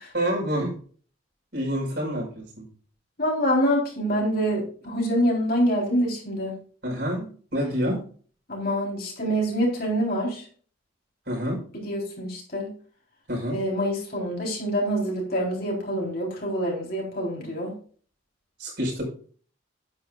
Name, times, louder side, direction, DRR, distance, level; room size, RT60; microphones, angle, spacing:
voice 1, 0.1-0.8 1.5-2.6 6.8-8.0 11.3-11.6 13.3-13.6 18.6-19.0, equal, 55° right, 0 dB, 5.2 m, -27 dB
voice 2, 3.2-6.5 8.5-10.4 11.7-12.7 13.5-17.7, equal, 45° left, -1 dB, 3.8 m, -26 dB
10.0 x 9.8 x 2.5 m, 0.43 s
head